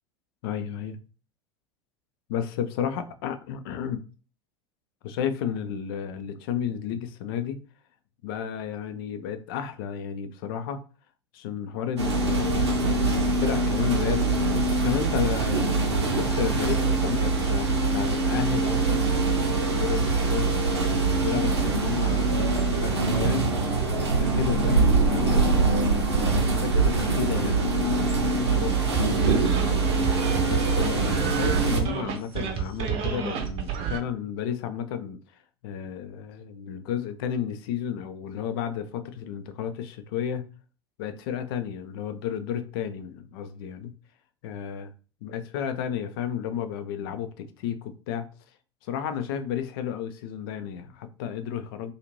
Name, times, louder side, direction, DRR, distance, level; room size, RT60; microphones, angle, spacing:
voice 1, 0.4-1.0 2.3-4.0 5.0-7.6 8.2-10.8 11.3-14.3 14.8-20.7 21.2-23.6 23.8-25.7 26.3-29.9 30.4-35.2 35.6-40.5 41.0-43.9 44.4-44.9 45.2-48.3 48.8-51.9, left 8 dB, 60° left, 0.5 m, -32 dB
sound 1, 12.0-31.8, right 3 dB, 80° right, 0.7 m, -23 dB
sound 2, 28.9-34.0, right 8 dB, 45° right, 0.7 m, -30 dB
2.6 x 2.4 x 3.0 m
figure-of-eight pair, 80°, 14 cm